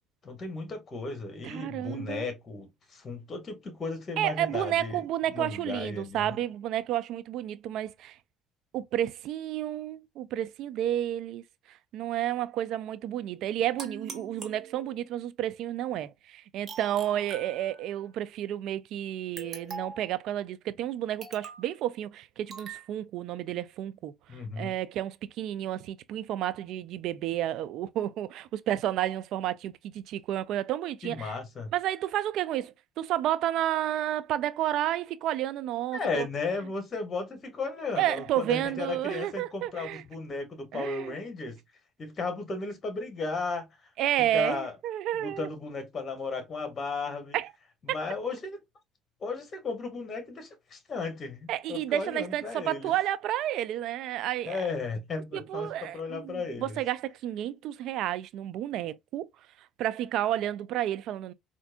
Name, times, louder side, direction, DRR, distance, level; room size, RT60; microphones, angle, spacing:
voice 1, 0.2-6.4 24.3-24.7 31.0-31.7 35.9-41.6 42.0-43.7 44.2-44.7 45.1-47.4 47.8-48.6 49.2-52.9 54.5-56.8, left 4 dB, 40° left, 1.5 m, -35 dB
voice 2, 1.4-2.3 4.2-8.2 8.7-31.4 31.7-36.3 38.0-40.0 40.7-41.2 44.0-45.5 47.3-47.5 47.9-48.0 51.5-54.6 55.3-59.3 59.8-61.3, right 12 dB, 70° right, 0.3 m, -31 dB
sound 1, 13.8-15.2 16.7-18.1 19.4-20.1 21.2-21.7 22.5-22.9, right 4 dB, 40° right, 1.1 m, -43 dB
4.3 x 2.5 x 2.3 m
supercardioid pair, 90°, 0 cm